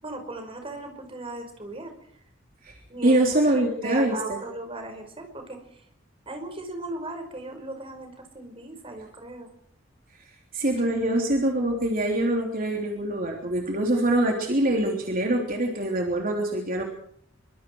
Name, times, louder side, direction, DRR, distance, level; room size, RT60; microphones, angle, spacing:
voice 1, 0.0-1.9 2.9-5.8 6.3-9.5, right 2 dB, 30° right, 5 dB, 5.4 m, -38 dB
voice 2, 2.6-4.4 10.5-16.8, right 1 dB, 50° right, 1 dB, 3.5 m, -24 dB
26.0 x 24.5 x 4.8 m, 0.64 s
head